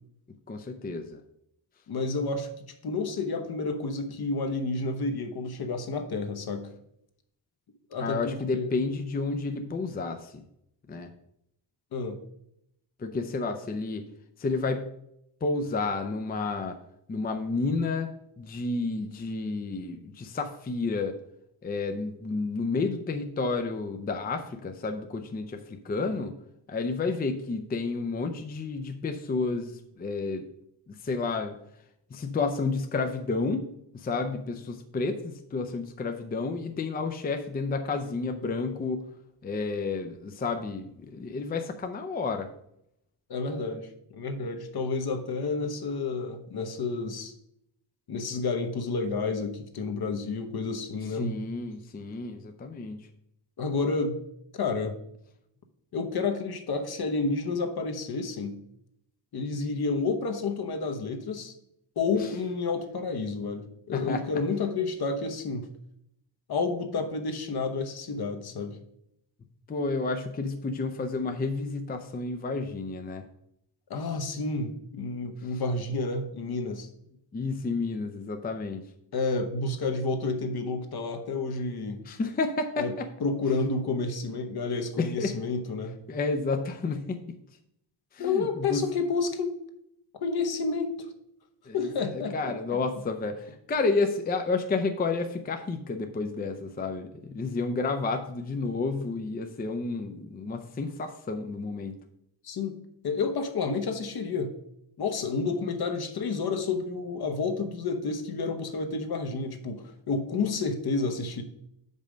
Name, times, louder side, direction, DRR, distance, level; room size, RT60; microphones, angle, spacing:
voice 1, 0.5-1.2 8.0-10.3 10.9-11.1 13.0-14.0 14.4-14.9 15.4-16.8 17.1-18.1 18.4-21.2 21.6-26.3 26.7-30.5 30.9-31.5 32.1-33.7 33.9-39.1 39.4-42.5 51.0-53.1 62.2-62.3 63.9-64.2 69.7-73.2 77.3-78.8 82.0-83.1 85.0-85.3 86.1-87.2 88.1-88.9 91.7-101.9, left 3 dB, 20° left, 6 dB, 0.5 m, -31 dB
voice 2, 1.9-6.7 7.9-8.7 11.9-12.2 43.3-47.3 48.1-51.3 53.6-54.2 54.5-54.9 55.9-58.6 59.3-61.5 62.0-65.7 66.5-68.8 73.9-76.9 79.1-82.0 82.8-82.9 83.2-86.0 88.2-89.5 90.2-91.1 91.7-92.8 102.4-102.8 103.0-104.5 105.0-111.4, left 4 dB, 55° left, 6 dB, 1.0 m, -30 dB
6.4 x 5.4 x 5.0 m, 0.76 s
cardioid pair, 130°, 45 cm